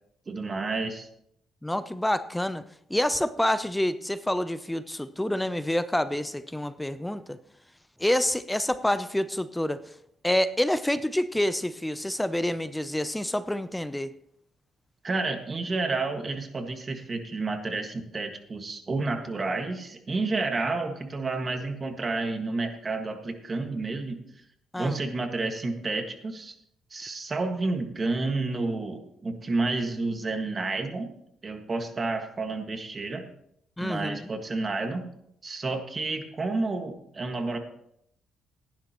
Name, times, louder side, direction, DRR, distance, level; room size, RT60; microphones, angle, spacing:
voice 1, 0.3-1.1 15.0-24.2 24.8-26.6 26.9-31.1 31.4-33.3 33.8-35.1 35.4-37.6, right 3 dB, 35° right, 1.7 m, -30 dB
voice 2, 1.6-2.6 2.9-7.4 8.0-9.8 10.2-14.1 24.7-25.0 33.8-34.3, left 1 dB, 5° left, 0.6 m, -27 dB
16.0 x 11.0 x 3.0 m
cardioid pair, 90°, 0 cm